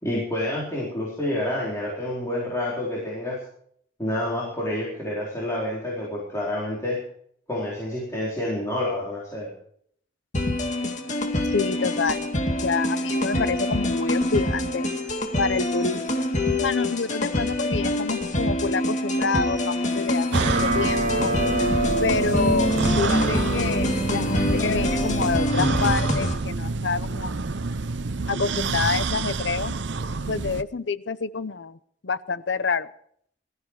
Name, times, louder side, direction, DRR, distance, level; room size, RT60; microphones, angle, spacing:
voice 1, 0.0-3.4 4.0-7.0 7.5-9.5, left 1 dB, 15° left, -6 dB, 4.4 m, -28 dB
sound 1, 10.3-26.3, left 1 dB, 40° left, 2.3 m, -25 dB
voice 2, 11.5-12.3 12.6-14.9 15.4-16.3 16.6-21.3 22.0-27.3 28.3-29.7 30.3-31.8 32.0-32.9, left 4 dB, 75° left, 15 dB, 0.8 m, -27 dB
sound 2, 20.3-25.4, right 1 dB, 40° right, 2.5 m, -28 dB
sound 3, 20.3-30.6, right 4 dB, 70° right, 0.7 m, -28 dB
20.5 x 14.0 x 4.8 m, 0.65 s
head